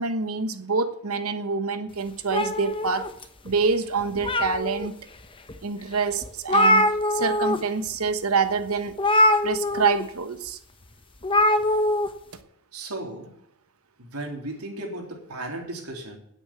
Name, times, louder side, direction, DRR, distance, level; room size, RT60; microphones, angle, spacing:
voice 1, 0.0-3.1 3.4-4.9 5.6-9.0 9.4-10.6, right 4 dB, 75° right, 10 dB, 1.2 m, -26 dB
sound 1, 2.3-3.5 4.0-4.9 5.5-5.6 5.9-6.0 6.2-7.6 7.9-8.1 9.0-10.0 11.2-12.1, left 1 dB, 25° left, 0.9 m, -22 dB
voice 2, 12.7-13.3 14.0-16.2, right 1 dB, 90° right, 1 dB, 3.6 m, -35 dB
9.9 x 8.7 x 9.1 m, 0.74 s
head